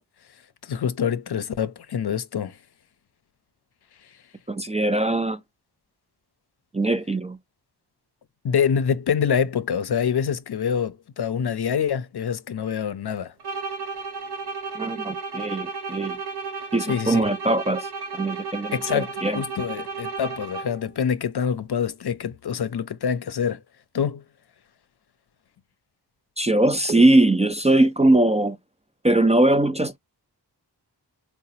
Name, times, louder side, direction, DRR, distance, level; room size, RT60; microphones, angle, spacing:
voice 1, 0.6-2.6 8.4-13.3 16.9-17.2 18.7-23.6 23.9-24.2, left 7 dB, 70° left, 0.6 m, -26 dB
voice 2, 4.5-5.4 6.7-7.4 14.7-16.2 16.7-17.9 18.1-19.4 26.4-28.6 29.0-30.0, right 1 dB, 15° right, 0.4 m, -21 dB
sound 1, 13.4-20.9, right 4 dB, 70° right, 0.7 m, -33 dB
4.0 x 2.2 x 2.7 m
wide cardioid pair, 60°, 41 cm